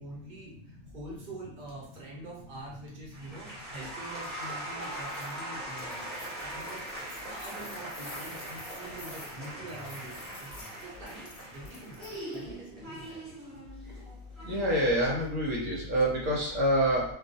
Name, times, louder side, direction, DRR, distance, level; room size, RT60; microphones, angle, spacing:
voice 1, 0.0-13.4, right 2 dB, 45° right, -4 dB, 0.9 m, -45 dB
sound 1, 3.1-15.0, right 1 dB, ahead, 0.7 m, -41 dB
sound 2, 4.8-5.3 5.7-12.4, left 3 dB, 70° left, 0.3 m, -50 dB
voice 2, 14.4-17.0, right 1 dB, 75° right, -3 dB, 1.0 m, -26 dB
2.3 x 2.3 x 2.6 m, 0.63 s
omnidirectional pair, 1.4 m